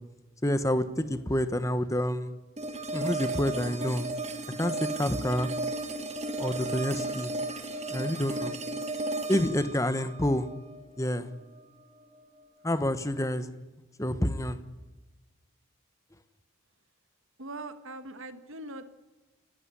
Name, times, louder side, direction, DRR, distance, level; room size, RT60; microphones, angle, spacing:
voice 1, 0.4-2.3 2.9-4.1 4.6-5.5 6.4-7.3 7.9-8.5 9.3-10.5 11.0-11.3 12.6-13.5 14.0-14.6, left 1 dB, 15° left, 11 dB, 1.2 m, -28 dB
sound 1, 2.6-11.6, right 2 dB, 30° right, 2.1 m, -34 dB
voice 2, 17.4-18.9, right 2 dB, 65° right, 9 dB, 1.9 m, -41 dB
29.0 x 14.0 x 10.0 m, 1.2 s
head